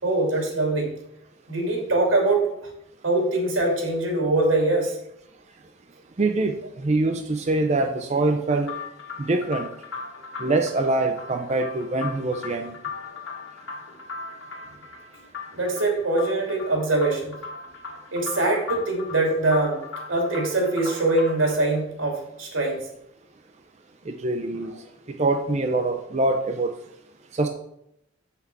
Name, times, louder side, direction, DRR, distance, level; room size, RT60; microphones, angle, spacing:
voice 1, 0.0-0.9 1.5-2.5 3.0-5.0 15.5-17.3 18.1-19.8 20.1-22.8, right 2 dB, 85° right, 0 dB, 2.6 m, -23 dB
voice 2, 6.2-8.7 9.2-9.7 10.4-12.8 24.1-24.7 25.2-26.7 27.3-27.5, right 2 dB, 35° right, 5 dB, 0.5 m, -24 dB
sound 1, 8.7-21.6, left 5 dB, 75° left, 1.7 m, -38 dB
7.9 x 5.8 x 4.7 m, 0.78 s
head